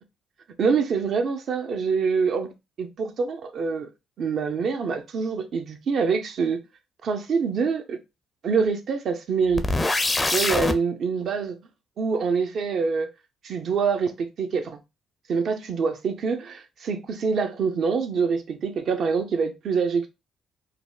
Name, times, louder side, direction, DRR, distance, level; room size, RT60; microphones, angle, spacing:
voice 1, 0.6-3.9 4.2-6.6 7.0-8.0 8.4-9.7 10.3-11.5 12.0-13.1 13.4-14.8 15.3-20.1, right 5 dB, 60° right, 0.6 m, -25 dB
sound 1, 9.6-10.8, left 2 dB, 20° left, 0.5 m, -23 dB
3.4 x 2.1 x 2.3 m
supercardioid pair, 60°, 0 cm